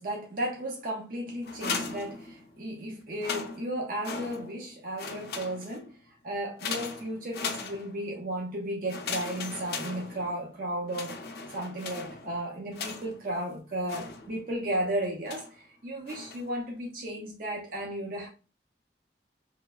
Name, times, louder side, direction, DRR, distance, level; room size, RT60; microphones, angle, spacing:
voice 1, 0.0-5.9 6.2-11.2 11.5-18.3, right 1 dB, 50° right, 0.5 m, -34 dB
sound 1, 1.4-2.7 3.1-4.7 5.0-5.9 6.6-8.2 8.9-10.5 10.9-13.3 13.9-14.6 15.3-15.6 16.1-16.6, left 4 dB, 60° left, 0.4 m, -38 dB
3.0 x 2.2 x 2.3 m
head